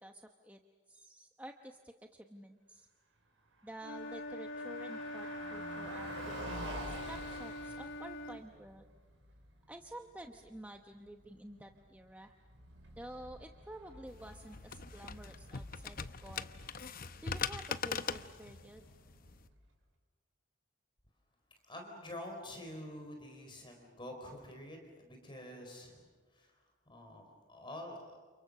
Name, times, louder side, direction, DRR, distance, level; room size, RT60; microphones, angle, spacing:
voice 1, 0.0-0.6 0.9-2.9 3.6-8.9 9.7-12.3 13.0-16.5 17.2-18.8, right 1 dB, 5° right, 4 dB, 0.9 m, -50 dB
Car passing by, 3.6-19.7, right 2 dB, 70° right, 5.5 m, -50 dB
Wind instrument woodwind instrument, 3.8-8.4, left 2 dB, 70° left, 1.5 m, -43 dB
sound 1, 14.1-19.5, left 6 dB, 45° left, 0.8 m, -41 dB
voice 2, 21.6-26.6 26.9-28.2, left 1 dB, 25° left, 3 dB, 4.5 m, -47 dB
29.5 x 28.5 x 6.7 m, 1.4 s
head